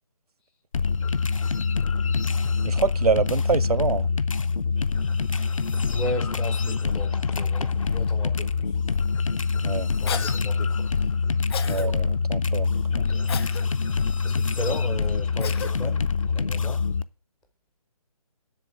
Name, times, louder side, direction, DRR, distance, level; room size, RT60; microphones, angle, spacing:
sound 1, 0.7-17.0, left 5 dB, 60° left, 0.7 m, -25 dB
voice 1, 1.8-2.1 5.9-8.8 10.0-10.8 11.6-11.8 14.2-16.8, equal, 5° left, 0.4 m, -36 dB
voice 2, 2.6-4.1 9.6-9.9 11.7-13.3, right 5 dB, 75° right, 0.6 m, -26 dB
sound 2, 5.3-12.1, left 2 dB, 75° left, 2.1 m, -50 dB
Cough, 10.1-10.4 11.5-11.9 13.3-13.6 15.4-15.7, left 6 dB, 40° left, 1.0 m, -32 dB
8.0 x 6.6 x 6.9 m
figure-of-eight pair, 145°, 19 cm